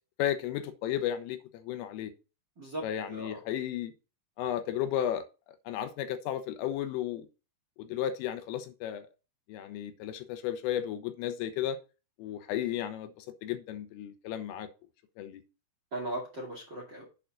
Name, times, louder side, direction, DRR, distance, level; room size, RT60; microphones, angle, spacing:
voice 1, 0.2-2.1 2.8-3.9 4.4-5.3 5.7-7.3 7.8-9.1 9.5-11.8 12.2-14.7 15.2-15.4, left 10 dB, 90° left, 3.4 m, -34 dB
voice 2, 2.6-3.4 15.9-17.0, right 1 dB, 40° right, 1.8 m, -38 dB
7.9 x 4.4 x 5.5 m
omnidirectional pair, 5.9 m